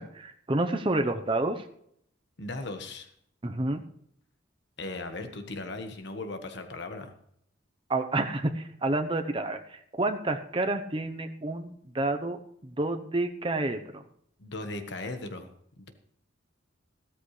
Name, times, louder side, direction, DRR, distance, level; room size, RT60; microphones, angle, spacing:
voice 1, 0.0-1.6 3.4-3.8 7.9-14.0, right 2 dB, 25° right, 6 dB, 0.8 m, -29 dB
voice 2, 2.4-3.1 4.8-7.1 14.4-15.9, left 2 dB, 60° left, 7 dB, 1.3 m, -38 dB
15.0 x 13.5 x 3.3 m, 0.69 s
head